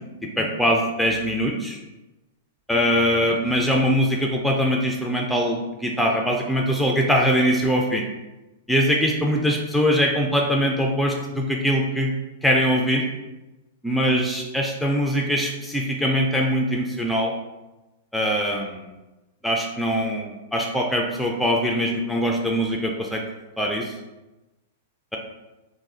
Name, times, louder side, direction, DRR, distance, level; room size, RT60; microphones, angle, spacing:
voice 1, 0.2-1.8 2.7-8.0 8.7-12.1 12.4-13.0 13.8-17.3 18.1-18.8 19.4-23.2 23.6-23.9, equal, ahead, -1 dB, 0.3 m, -22 dB
2.4 x 2.3 x 3.7 m, 1.1 s
hypercardioid pair, 130°, 0 cm